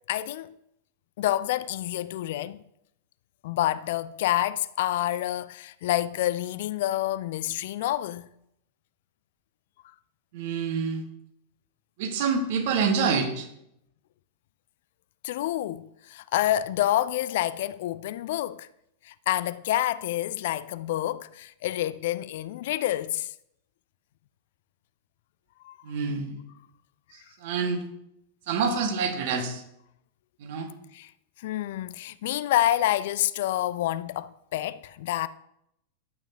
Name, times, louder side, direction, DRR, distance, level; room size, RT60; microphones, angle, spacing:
voice 1, 0.1-0.5 1.2-2.6 3.4-8.3 15.2-18.7 19.1-23.3 25.6-25.8 30.9-31.1 31.4-35.3, left 13 dB, 55° left, 0.3 m, -28 dB
voice 2, 10.3-11.1 12.0-13.5 25.8-26.3 27.4-27.8 28.5-29.6 30.4-30.7, right 5 dB, 50° right, 1.5 m, -27 dB
11.5 x 8.7 x 2.7 m
figure-of-eight pair, 90°, 0 cm